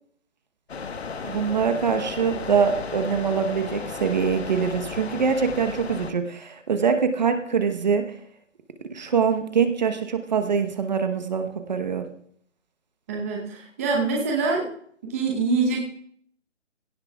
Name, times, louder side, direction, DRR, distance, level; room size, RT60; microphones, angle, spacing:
sound 1, 0.7-6.1, left 5 dB, 55° left, 1.3 m, -35 dB
voice 1, 1.2-8.2 8.9-12.1, right 6 dB, 35° right, 7 dB, 1.0 m, -24 dB
voice 2, 13.1-14.7 15.0-15.8, right 4 dB, 10° right, -2 dB, 0.9 m, -25 dB
16.5 x 16.5 x 2.3 m, 0.64 s
hypercardioid pair, 165°, 37 cm